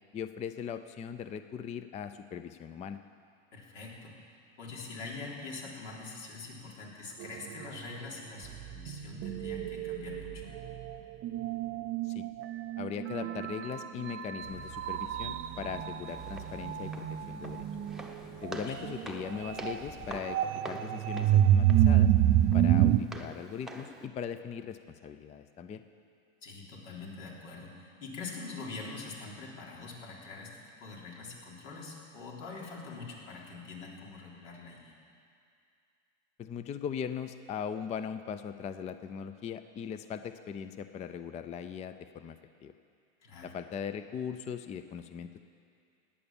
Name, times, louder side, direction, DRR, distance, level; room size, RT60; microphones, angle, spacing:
voice 1, 0.1-3.0 12.0-12.3 12.8-17.7 18.4-22.1 22.5-25.8 36.4-42.7 43.4-45.4, left 7 dB, 20° left, 11 dB, 0.4 m, -39 dB
voice 2, 3.5-4.2 4.6-10.5 18.7-18.8 26.4-35.0 43.2-43.5, left 3 dB, 80° left, -3 dB, 3.7 m, -44 dB
sound 1, 7.2-7.6 8.4-23.0, right 11 dB, 35° right, 0.6 m, -29 dB
sound 2, 14.4-20.2, left 5 dB, 40° left, 3.4 m, -54 dB
Walk footsteps, 16.1-24.1, right 1 dB, ahead, 0.8 m, -47 dB
17.0 x 9.8 x 7.1 m, 2.5 s
supercardioid pair, 120°, 36 cm